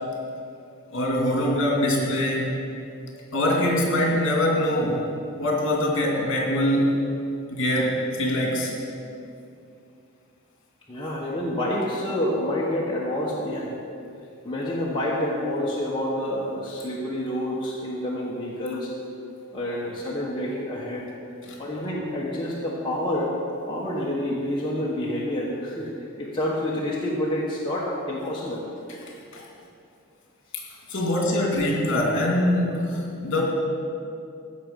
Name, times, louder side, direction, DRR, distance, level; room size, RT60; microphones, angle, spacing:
voice 1, 0.9-2.7 3.3-5.0 5.4-6.9 7.5-8.7 21.4-21.6 29.3-29.4 30.5-30.6 30.9-33.4, left 1 dB, 55° left, -2 dB, 2.3 m, -23 dB
voice 2, 10.9-13.8 14.4-18.9 19.5-21.1 21.6-23.3 23.7-25.9 26.2-28.6 30.9-31.0, left 1 dB, 20° left, -6 dB, 1.2 m, -28 dB
15.5 x 6.0 x 5.3 m, 2.6 s
head